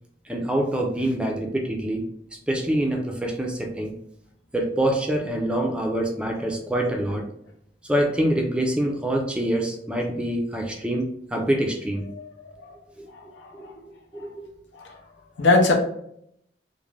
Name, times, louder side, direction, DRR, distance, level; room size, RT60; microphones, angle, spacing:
voice 1, 0.3-2.0 2.5-3.9 4.5-7.2 7.9-12.1 13.0-13.1 13.5-13.7 14.1-14.5, right 1 dB, 5° right, 1 dB, 0.3 m, -25 dB
voice 2, 12.1-12.7 13.1-13.8 14.1-14.3 14.7-15.0 15.4-15.7, left 3 dB, 85° left, 2 dB, 0.5 m, -24 dB
2.4 x 2.0 x 3.1 m, 0.71 s
head